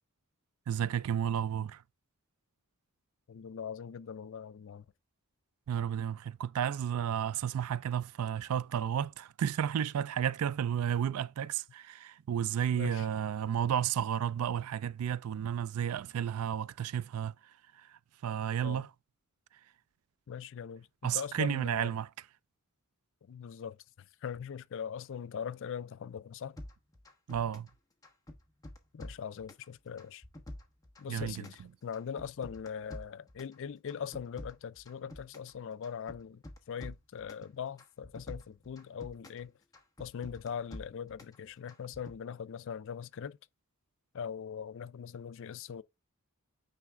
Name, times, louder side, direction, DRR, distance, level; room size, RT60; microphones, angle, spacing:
voice 1, 0.7-1.8 5.7-17.3 17.8-17.9 18.2-18.9 21.0-22.1 27.3-27.7 31.1-31.4, right 9 dB, 75° right, 0.3 m, -32 dB
voice 2, 3.3-4.9 12.7-13.1 18.6-18.8 20.3-22.0 23.2-23.8 24.2-26.6 28.9-30.2 31.0-39.5 40.0-43.4 44.1-45.8, left 7 dB, 60° left, 0.4 m, -41 dB
sound 1, 26.6-27.7 28.0-29.7 30.0-31.6 31.9-33.6 33.9-35.5 35.8-37.5 37.8-39.4 39.7-41.4 41.7-42.2, left 1 dB, 15° left, 1.0 m, -48 dB
9.1 x 3.4 x 3.6 m
head